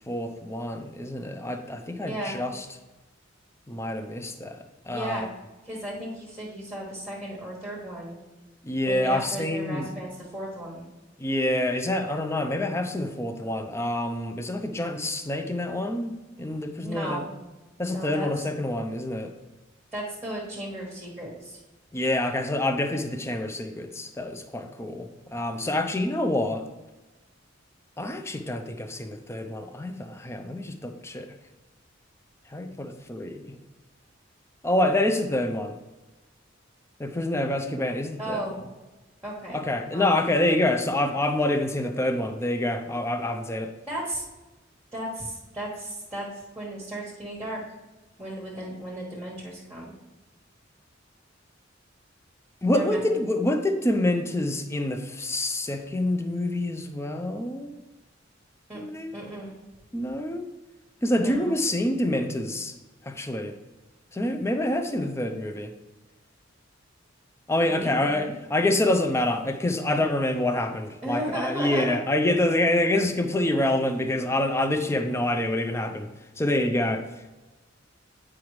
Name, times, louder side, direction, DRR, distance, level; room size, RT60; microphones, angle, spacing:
voice 1, 0.1-2.6 3.7-5.3 8.6-9.9 11.2-17.2 17.8-19.3 21.9-26.7 28.0-31.3 32.5-33.6 34.6-35.8 37.0-38.4 39.5-43.7 52.6-57.8 58.7-59.2 59.9-60.5 61.0-62.7 63.0-63.5 64.1-65.7 67.5-76.1 76.4-77.1, left 1 dB, 15° left, 7 dB, 0.5 m, -27 dB
voice 2, 2.0-2.4 4.9-5.2 5.6-8.1 8.8-10.8 16.8-17.3 17.9-18.3 19.9-21.6 38.2-38.6 39.2-40.1 43.9-44.2 44.9-46.3 46.6-47.6 48.2-49.9 52.7-53.0 58.7-58.8 59.1-59.5 61.1-61.6 67.6-68.4 71.0-72.0, right 1 dB, 5° right, -4 dB, 1.3 m, -35 dB
8.8 x 4.9 x 3.1 m, 1.1 s
head